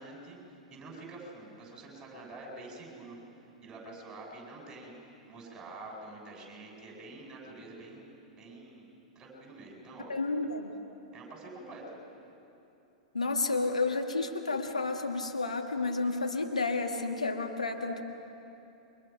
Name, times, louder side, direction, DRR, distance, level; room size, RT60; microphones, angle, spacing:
voice 1, 0.0-3.2 3.6-4.9 5.3-8.1 8.4-8.9 9.1-10.1 11.1-11.9, right 2 dB, 15° right, -2 dB, 7.7 m, -47 dB
voice 2, 10.1-10.7 13.1-18.0, left 3 dB, 80° left, 4 dB, 1.6 m, -31 dB
29.0 x 24.5 x 5.9 m, 2.9 s
figure-of-eight pair, 100°, 4 cm